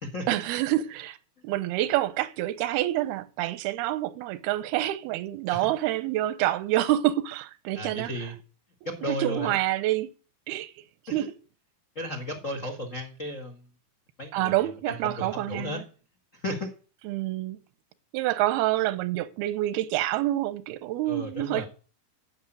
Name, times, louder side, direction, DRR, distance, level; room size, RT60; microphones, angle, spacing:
voice 1, 0.3-1.2 1.4-8.1 9.1-10.1 10.5-10.7 11.1-11.4 14.3-15.8 17.0-17.6 18.1-21.7, right 15 dB, 90° right, 2.7 m, -27 dB
voice 2, 7.7-8.4 9.0-9.6 11.1-11.3 11.9-13.6 14.2-14.5 14.9-15.8 16.3-16.7 21.1-21.7, left 1 dB, 65° left, 0.7 m, -34 dB
10.0 x 6.6 x 9.0 m
omnidirectional pair, 4.3 m